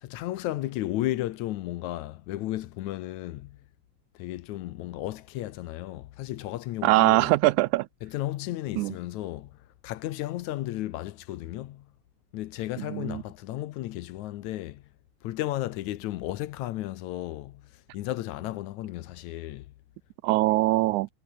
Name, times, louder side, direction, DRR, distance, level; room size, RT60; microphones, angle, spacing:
voice 1, 0.0-3.6 4.1-7.3 8.0-11.9 12.3-14.9 15.2-19.7, left 15 dB, 75° left, 2.2 m, -34 dB
voice 2, 6.8-7.9 8.8-8.9 12.9-13.2 20.2-21.1, right 19 dB, 85° right, 2.0 m, -22 dB
omnidirectional pair, 3.4 m